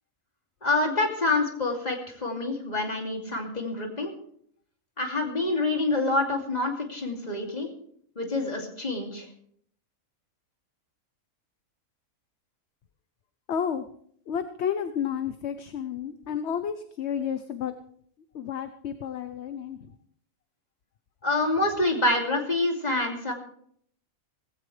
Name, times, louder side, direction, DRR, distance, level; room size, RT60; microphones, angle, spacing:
voice 1, 0.6-4.1 5.0-7.7 8.2-9.3 21.2-23.3, left 2 dB, 30° left, 2 dB, 2.8 m, -27 dB
voice 2, 13.5-13.8 14.3-17.7 18.3-20.0, left 8 dB, 55° left, 10 dB, 1.0 m, -31 dB
17.5 x 16.5 x 3.3 m, 0.63 s
omnidirectional pair, 1.5 m